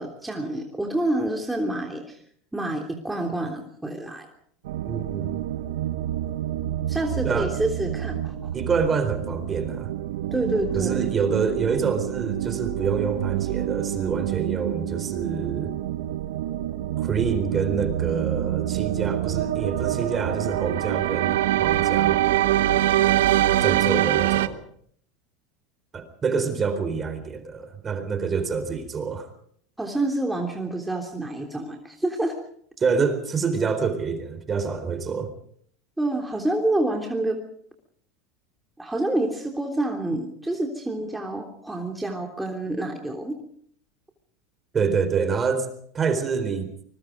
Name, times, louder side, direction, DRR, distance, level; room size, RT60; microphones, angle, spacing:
voice 1, 0.0-2.2 2.5-4.3 6.9-8.5 10.3-11.0 29.8-32.3 36.0-37.4 38.8-43.4, right 1 dB, 5° right, 2 dB, 3.3 m, -28 dB
sound 1, 4.6-24.5, right 13 dB, 80° right, 1.2 m, -26 dB
voice 2, 4.8-5.4 7.2-7.6 8.5-9.9 10.7-15.7 17.0-22.2 23.6-24.6 25.9-29.3 32.8-35.3 44.7-45.7 45.9-46.7, right 5 dB, 25° right, 10 dB, 4.2 m, -27 dB
25.0 x 21.5 x 5.2 m, 0.64 s
hypercardioid pair, 105°, 0 cm